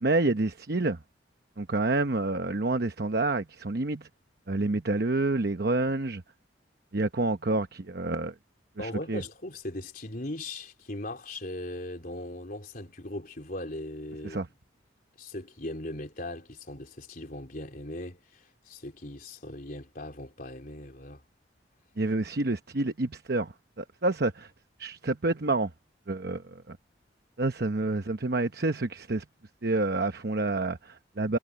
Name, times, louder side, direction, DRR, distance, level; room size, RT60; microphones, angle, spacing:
voice 1, 0.0-1.0 1.6-4.1 4.5-6.2 6.9-8.3 8.8-9.2 14.2-14.5 22.0-24.5 24.8-25.7 26.1-26.8 27.4-29.2 29.6-31.4, right 2 dB, 55° right, 0.9 m, -28 dB
voice 2, 8.8-14.4 15.2-21.2, left 1 dB, 50° left, 3.8 m, -39 dB
head